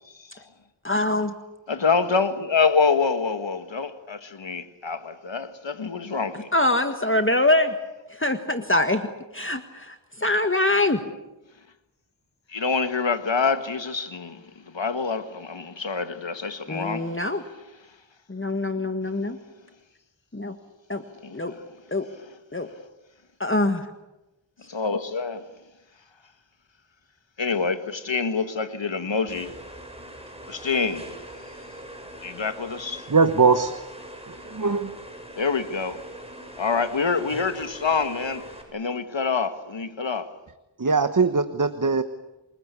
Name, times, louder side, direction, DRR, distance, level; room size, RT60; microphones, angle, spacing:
voice 1, 0.1-0.4 1.7-6.5 12.5-17.2 21.2-21.6 24.7-25.5 27.4-29.6 30.5-31.1 32.2-33.1 35.4-36.0 36.6-38.5 38.7-40.3, left 5 dB, 70° left, 1.8 m, -26 dB
voice 2, 0.8-1.3 6.5-7.7 8.1-11.0 16.7-17.4 18.3-19.4 20.3-20.6 20.9-21.0 21.3-21.5 21.9-22.1 22.5-22.7 23.4-23.9, left 2 dB, 25° left, 1.7 m, -24 dB
sound 1, 29.3-38.6, right 1 dB, 15° right, 6.9 m, -42 dB
voice 3, 33.1-33.7 34.3-34.9 40.8-42.0, right 4 dB, 45° right, 1.2 m, -21 dB
28.0 x 20.0 x 8.4 m
wide cardioid pair, 45°, 46 cm